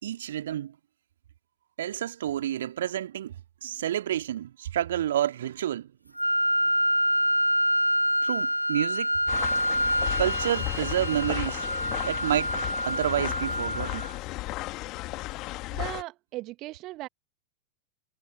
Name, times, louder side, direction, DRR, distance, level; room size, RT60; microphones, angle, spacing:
voice 1, 0.0-0.8 1.8-3.4 3.6-5.9 8.2-9.2 10.2-11.7 12.1-14.1, right 11 dB, 60° right, 2.0 m, -29 dB
Wind instrument woodwind instrument, 6.2-14.1, equal, 90° right, 0.6 m, -27 dB
sound 1, 9.3-16.0, left 20 dB, 40° left, 1.8 m, -34 dB
voice 2, 15.7-17.1, right 18 dB, 40° right, 1.5 m, -37 dB
figure-of-eight pair, 90°, 0 cm